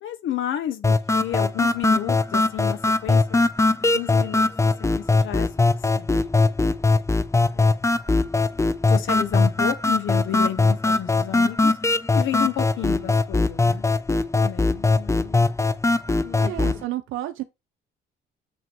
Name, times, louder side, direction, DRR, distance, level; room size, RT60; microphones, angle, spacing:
voice 1, 0.0-3.5 3.9-5.5 5.9-6.8 7.5-7.8 8.9-11.8 12.1-13.8 14.3-15.5 16.2-16.5, left 11 dB, 80° left, 1.4 m, -31 dB
sound 1, 0.8-16.8, left 3 dB, 15° left, 0.7 m, -21 dB
voice 2, 16.4-17.4, right 14 dB, 90° right, 0.7 m, -30 dB
8.0 x 3.0 x 4.6 m
cardioid pair, 90°, 20 cm